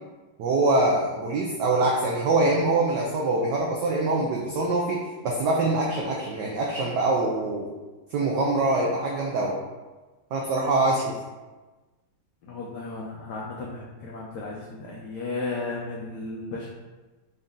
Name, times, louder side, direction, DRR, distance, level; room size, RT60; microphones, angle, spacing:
voice 1, 0.4-5.0 5.2-7.7 8.1-9.5 10.3-11.1, right 2 dB, 85° right, -2 dB, 0.9 m, -24 dB
voice 2, 12.4-16.7, left 3 dB, 85° left, -3 dB, 0.9 m, -34 dB
4.1 x 2.6 x 3.6 m, 1.2 s
omnidirectional pair, 2.4 m